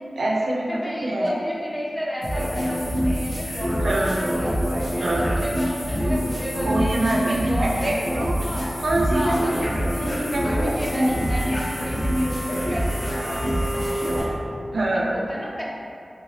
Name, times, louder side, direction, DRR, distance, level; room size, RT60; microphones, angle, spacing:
voice 1, 0.2-1.3 3.8-4.2 5.0-5.4 6.5-8.3 8.8-9.5 10.0-11.3 14.7-15.2, right 1 dB, 80° right, -3 dB, 0.4 m, -25 dB
voice 2, 0.7-4.6 4.9-6.9 7.2-8.7 9.1-9.7 10.4-14.6 15.1-15.6, equal, 15° left, -5 dB, 0.7 m, -32 dB
sound 1, 2.2-14.2, equal, 85° left, 1.2 m, -25 dB
3.2 x 2.8 x 3.0 m, 2.5 s
wide cardioid pair, 55°, 0 cm